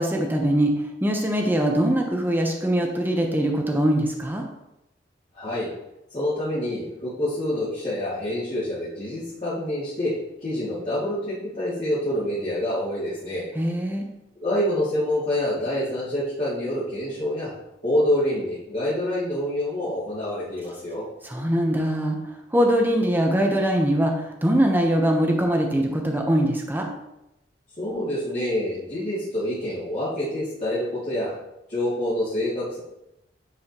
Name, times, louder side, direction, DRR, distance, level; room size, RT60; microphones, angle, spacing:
voice 1, 0.0-4.5 13.5-14.1 21.2-26.9, right 1 dB, 10° right, 2 dB, 0.8 m, -22 dB
voice 2, 5.3-5.7 6.1-10.1 10.4-13.5 14.3-17.5 17.8-21.1 27.8-31.4 31.7-32.8, left 1 dB, 40° left, -13 dB, 2.4 m, -27 dB
9.6 x 5.0 x 2.9 m, 0.88 s
head